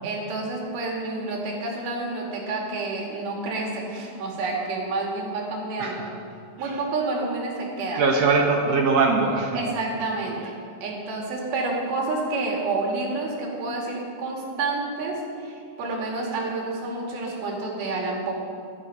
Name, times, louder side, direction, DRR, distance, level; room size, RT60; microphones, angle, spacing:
voice 1, 0.0-6.1 6.6-8.0 9.5-10.4 10.8-18.3, right 3 dB, 85° right, -1 dB, 4.2 m, -29 dB
voice 2, 7.9-9.6, right 4 dB, 65° right, 2 dB, 1.7 m, -22 dB
15.5 x 11.5 x 5.6 m, 2.4 s
omnidirectional pair, 4.2 m